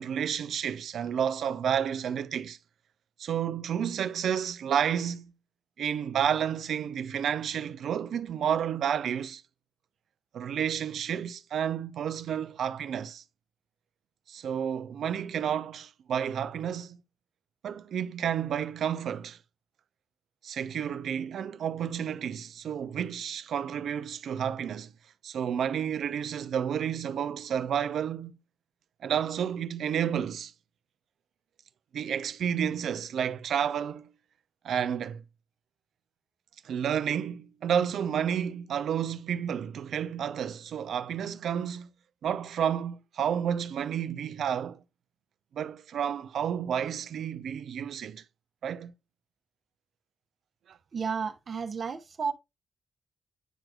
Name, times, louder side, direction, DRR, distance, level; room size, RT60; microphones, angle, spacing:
voice 1, 0.0-2.6 3.2-5.3 5.8-9.4 10.3-13.2 14.3-17.0 17.6-19.4 20.4-24.9 25.2-28.4 29.0-30.5 31.9-34.1 34.6-35.2 36.6-41.9 42.2-44.8 45.5-48.2 48.6-48.9 50.7-50.8, right 8 dB, 75° right, 0.4 m, -31 dB
voice 2, 50.9-52.3, right 6 dB, 60° right, 0.8 m, -32 dB
9.0 x 4.6 x 2.3 m
supercardioid pair, 45°, 0 cm